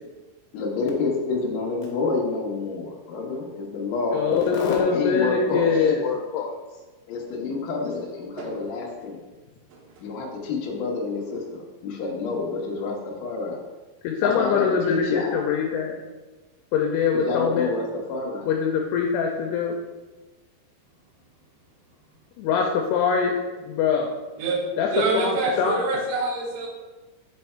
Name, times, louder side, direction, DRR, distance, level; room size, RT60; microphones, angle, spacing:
voice 1, 0.5-5.7 7.1-9.2 10.0-13.6 14.2-15.4 17.1-18.5, left 3 dB, 65° left, -2 dB, 1.8 m, -28 dB
voice 2, 4.1-6.5 8.1-8.2 14.0-15.9 16.7-17.7 18.5-19.7 22.4-23.4 23.7-24.1 24.8-26.0, left 6 dB, 80° left, 1 dB, 2.5 m, -23 dB
voice 3, 24.4-26.7, right 3 dB, 85° right, -2 dB, 3.3 m, -26 dB
7.7 x 3.4 x 4.4 m, 1.2 s
omnidirectional pair, 4.7 m